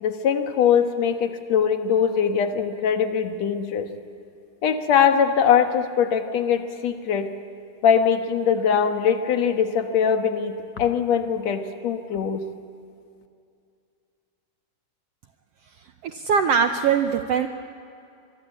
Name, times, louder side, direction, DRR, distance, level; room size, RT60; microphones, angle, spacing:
voice 1, 0.0-3.9 4.6-7.3 7.8-12.4, left 7 dB, 60° left, 6 dB, 2.3 m, -22 dB
voice 2, 16.0-17.5, right 6 dB, 85° right, 7 dB, 1.3 m, -21 dB
25.5 x 23.0 x 8.5 m, 2.5 s
omnidirectional pair, 3.9 m